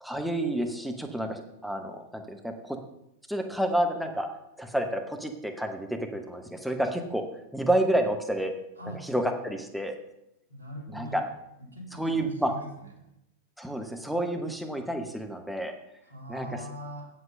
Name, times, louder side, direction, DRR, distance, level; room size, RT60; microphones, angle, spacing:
voice 1, 0.0-2.8 3.3-4.3 4.6-7.2 7.5-8.5 9.0-10.0 10.9-11.2 12.0-12.5 13.6-15.8 16.3-16.5, right 1 dB, ahead, 4 dB, 1.0 m, -29 dB
voice 2, 10.5-11.3 11.7-12.9 16.0-17.1, equal, 90° left, 0 dB, 2.3 m, -41 dB
8.0 x 7.6 x 5.2 m, 0.82 s
figure-of-eight pair, 90°, 0 cm